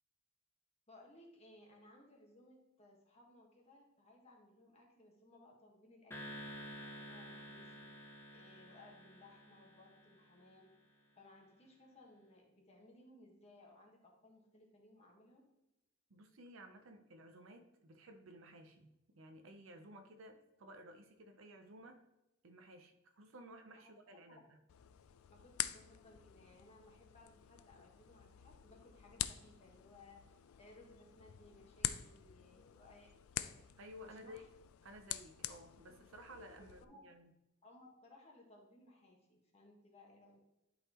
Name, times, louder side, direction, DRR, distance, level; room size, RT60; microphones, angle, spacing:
voice 1, 0.9-7.9 8.3-10.7 11.2-15.4 23.7-23.9 24.3-24.4 25.3-33.6 34.0-34.5 36.6-37.0 37.6-40.4, left 2 dB, 30° left, -1 dB, 1.4 m, -62 dB
sound 1, 6.1-10.6, equal, 10° left, 0.8 m, -51 dB
voice 2, 16.1-22.1 22.4-24.6 33.8-34.5 34.8-37.3, equal, 70° right, 6 dB, 0.7 m, -56 dB
sound 2, 24.7-36.9, left 12 dB, 90° left, 0.3 m, -46 dB
11.0 x 4.0 x 3.0 m, 0.93 s
head